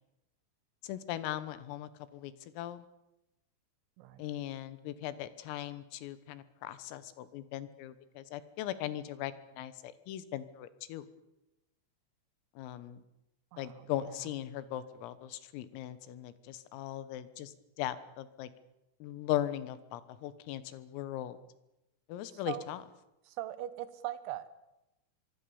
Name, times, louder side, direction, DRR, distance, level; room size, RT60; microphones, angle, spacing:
voice 1, 0.9-2.8 4.2-11.1 12.6-13.0 13.6-17.5 17.8-18.5 19.0-21.4 22.1-22.8, left 12 dB, 90° left, 14 dB, 4.0 m, -39 dB
voice 2, 13.5-14.3 22.3-22.7 23.2-24.5, right 13 dB, 75° right, 14 dB, 3.3 m, -41 dB
25.0 x 23.0 x 7.1 m, 0.92 s
omnidirectional pair, 5.8 m